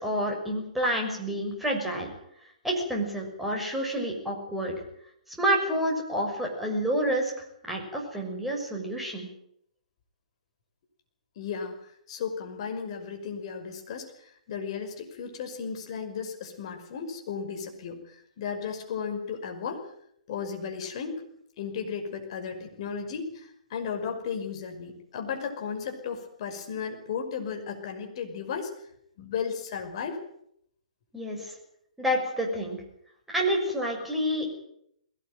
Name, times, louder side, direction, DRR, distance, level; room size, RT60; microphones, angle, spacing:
voice 1, 0.0-2.1 2.6-4.8 5.4-7.3 7.6-9.3 31.1-31.5 32.0-32.8 33.3-34.6, equal, 5° right, -1 dB, 6.5 m, -28 dB
voice 2, 11.4-11.8 12.1-19.8 20.3-21.2 21.6-28.7 29.2-30.2 31.3-31.5, left 6 dB, 45° left, 4 dB, 5.7 m, -35 dB
21.0 x 18.0 x 9.2 m, 0.73 s
figure-of-eight pair, 125°, 4 cm